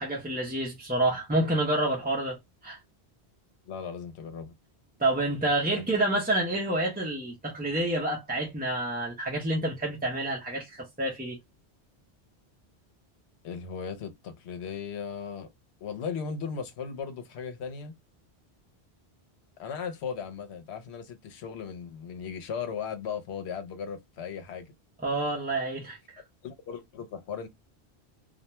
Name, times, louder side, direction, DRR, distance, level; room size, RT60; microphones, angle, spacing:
voice 1, 0.0-2.8 5.0-11.4 25.0-26.2, right 1 dB, 10° right, 0.4 m, -28 dB
voice 2, 3.6-4.5 13.4-15.5 15.8-17.9 19.6-24.7 26.4-27.5, left 6 dB, 80° left, 0.9 m, -37 dB
2.3 x 2.1 x 2.8 m
omnidirectional pair, 1.1 m